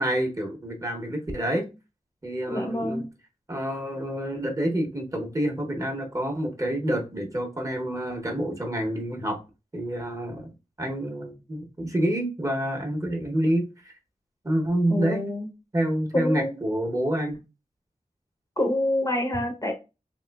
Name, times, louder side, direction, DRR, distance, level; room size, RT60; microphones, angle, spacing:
voice 1, 0.0-1.7 2.2-3.0 3.5-9.4 9.7-10.5 10.8-13.7 14.4-15.2 15.7-17.4, right 1 dB, 25° right, 0.7 m, -27 dB
voice 2, 2.5-3.1 14.9-15.5 16.1-16.6 18.6-19.7, left 1 dB, 25° left, 0.6 m, -27 dB
3.2 x 2.9 x 2.2 m
wide cardioid pair, 90°, 14 cm